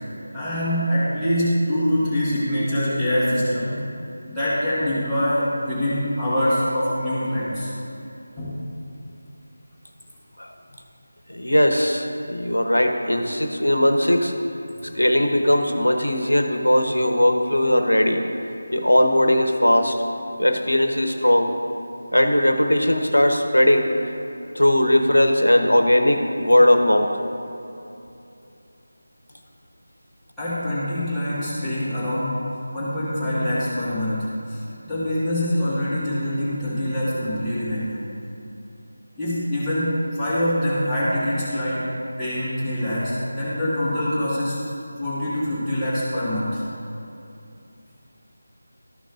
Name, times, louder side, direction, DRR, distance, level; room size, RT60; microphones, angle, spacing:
voice 1, 0.3-3.9 4.3-7.7 8.4-8.5 30.4-32.4 32.7-38.0 39.2-41.9 42.2-44.6 45.0-46.6, equal, ahead, -18 dB, 1.7 m, -24 dB
voice 2, 11.3-14.3 14.9-18.2 18.7-20.0 20.4-21.5 22.1-23.9 24.6-27.1, left 1 dB, 80° left, 5 dB, 0.9 m, -19 dB
13.0 x 6.1 x 2.6 m, 2.8 s
figure-of-eight pair, 165°, 0 cm